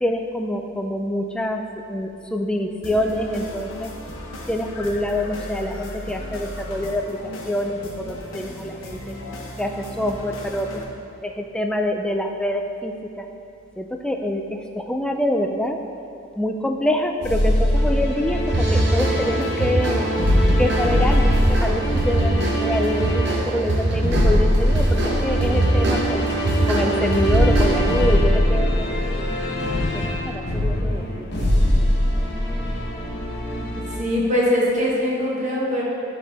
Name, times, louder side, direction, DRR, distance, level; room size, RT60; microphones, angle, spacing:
voice 1, 0.0-1.6 1.9-3.9 4.5-7.2 7.5-9.2 9.6-10.8 11.2-13.3 13.8-15.8 16.4-20.1 20.6-21.3 21.6-26.2 26.7-28.7 29.2-29.3 29.9-31.0, left 1 dB, 5° left, 4 dB, 0.3 m, -25 dB
sound 1, 2.8-10.8, left 1 dB, 90° left, 0.9 m, -36 dB
sound 2, 17.2-34.0, equal, 60° left, 1.1 m, -22 dB
sound 3, 18.5-28.0, right 1 dB, 60° right, 0.8 m, -23 dB
voice 2, 34.0-35.8, left 1 dB, 40° right, -5 dB, 1.4 m, -21 dB
10.0 x 4.1 x 3.5 m, 2.6 s
head